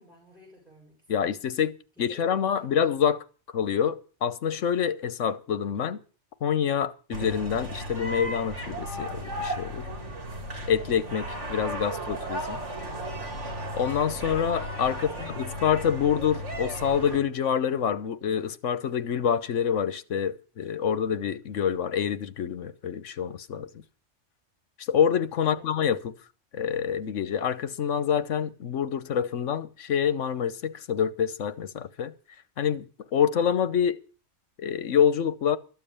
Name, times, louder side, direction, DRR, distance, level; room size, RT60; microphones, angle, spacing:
voice 1, 0.0-1.4 2.0-2.9 12.8-13.4 14.9-15.4 25.4-25.7, equal, ahead, 6.5 m, -53 dB
voice 2, 1.1-3.2 3.5-6.0 6.4-9.9 10.7-12.6 13.7-23.7 24.8-26.1 26.5-32.1 32.6-34.0 34.6-35.6, left 8 dB, 80° left, 1.3 m, -26 dB
sound 1, 7.1-17.2, equal, 70° right, 3.0 m, -35 dB
13.0 x 7.4 x 8.7 m
omnidirectional pair, 1.3 m